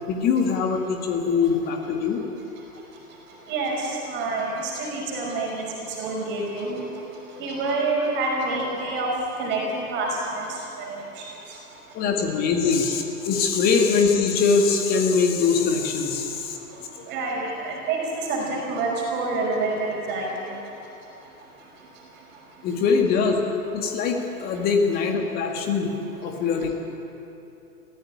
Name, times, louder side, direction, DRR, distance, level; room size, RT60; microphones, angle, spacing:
voice 1, 0.1-2.2 11.9-17.0 22.6-23.4 23.7-26.7, left 5 dB, 20° left, 3 dB, 2.0 m, -23 dB
voice 2, 3.5-5.7 6.0-6.9 7.4-9.1 9.4-11.2 17.1-20.3, right 3 dB, 25° right, -2 dB, 5.4 m, -27 dB
22.0 x 15.5 x 9.7 m, 2.9 s
figure-of-eight pair, 120°, 46 cm